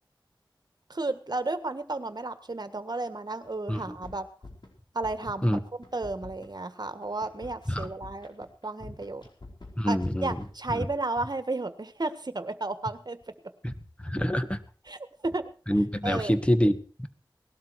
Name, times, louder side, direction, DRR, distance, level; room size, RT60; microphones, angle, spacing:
voice 1, 0.9-4.3 4.9-5.6 5.9-9.2 9.8-13.2 14.9-15.4 16.0-16.4, right 2 dB, 55° right, 10 dB, 1.6 m, -33 dB
sound 1, 3.4-3.5 3.8-4.7 5.0-5.5 5.8-10.6, left 2 dB, 65° left, 4.8 m, -47 dB
voice 2, 9.8-10.4 10.8-10.9 13.6-13.7 14.0-14.6 15.7-17.1, equal, 15° left, 9 dB, 1.8 m, -26 dB
19.0 x 12.5 x 4.8 m, 0.39 s
wide cardioid pair, 50°, 8 cm